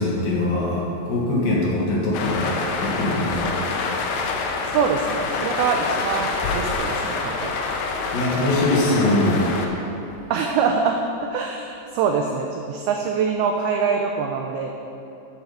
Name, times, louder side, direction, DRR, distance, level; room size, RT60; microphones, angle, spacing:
voice 1, 0.0-3.6 8.1-9.5, left 2 dB, 60° left, -4 dB, 3.0 m, -22 dB
sound 1, 2.1-9.7, left 4 dB, 75° left, 2.9 m, -26 dB
voice 2, 4.7-7.5 10.3-11.0 11.3-14.7, right 5 dB, 85° right, 3 dB, 2.2 m, -24 dB
12.5 x 8.0 x 5.1 m, 2.9 s
omnidirectional pair, 5.2 m